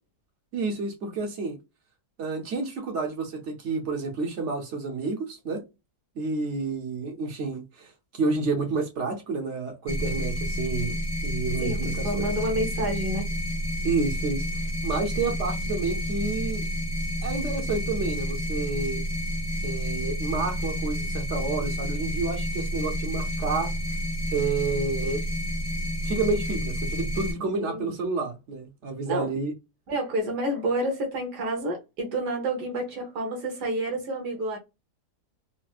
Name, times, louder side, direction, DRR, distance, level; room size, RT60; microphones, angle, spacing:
voice 1, 0.5-1.6 2.2-5.6 6.2-12.3 13.8-14.4 14.8-16.6 17.2-19.0 19.6-23.7 24.3-25.2 26.0-29.5, right 3 dB, 55° right, 0.9 m, -30 dB
sound 1, 9.9-27.3, equal, 40° left, 0.3 m, -30 dB
voice 2, 11.6-13.3 27.6-27.9 29.1-29.3 29.9-34.6, right 1 dB, 85° right, 1.6 m, -29 dB
4.2 x 2.0 x 2.3 m
omnidirectional pair, 1.7 m